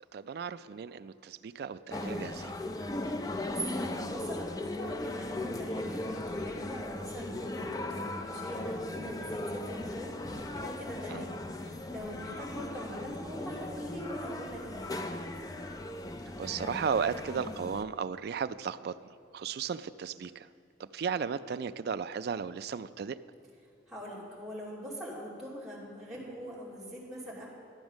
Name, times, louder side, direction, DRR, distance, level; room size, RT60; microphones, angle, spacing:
voice 1, 0.1-2.5 11.1-11.2 16.4-18.9 19.3-20.5 20.8-23.2, right 6 dB, 55° right, 14 dB, 0.3 m, -35 dB
sound 1, 1.9-17.8, left 1 dB, 20° left, 0.4 m, -38 dB
voice 2, 3.2-15.2 23.9-27.5, equal, ahead, -8 dB, 2.9 m, -42 dB
12.5 x 8.0 x 6.2 m, 2.4 s
head